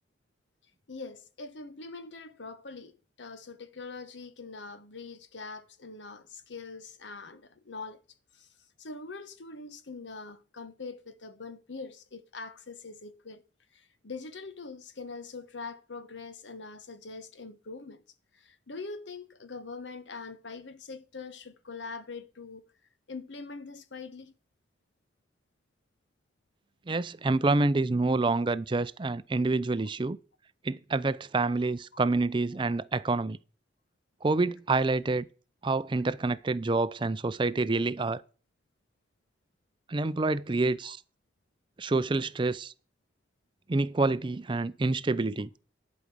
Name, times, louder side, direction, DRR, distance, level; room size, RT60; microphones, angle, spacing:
voice 1, 0.9-8.0 8.3-8.5 8.8-13.4 13.7-18.0 18.3-22.6 23.1-24.3 32.7-32.8 40.3-40.4 40.8-40.9 44.0-44.1, left 4 dB, 90° left, 1.1 m, -43 dB
voice 2, 26.9-30.2 30.6-33.4 34.2-35.3 35.6-38.2 39.9-41.0 41.8-42.7 43.7-45.5, right 3 dB, 25° right, 0.4 m, -27 dB
11.5 x 5.2 x 6.1 m
head